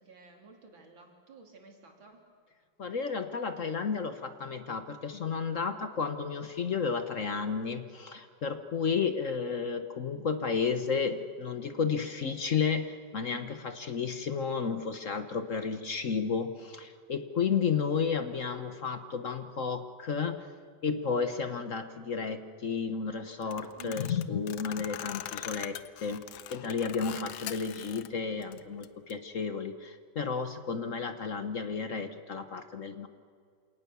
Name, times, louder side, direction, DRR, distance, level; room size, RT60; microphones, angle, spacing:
voice 1, 0.0-2.2 23.8-24.1, right 5 dB, 85° right, 2 dB, 3.8 m, -51 dB
voice 2, 2.8-20.5 20.8-26.2 26.5-33.1, left 5 dB, 50° left, 9 dB, 1.2 m, -32 dB
sound 1, 23.4-28.1 28.4-29.1, left 12 dB, 75° left, 1.4 m, -42 dB
27.5 x 18.5 x 6.9 m, 2.2 s
omnidirectional pair, 2.1 m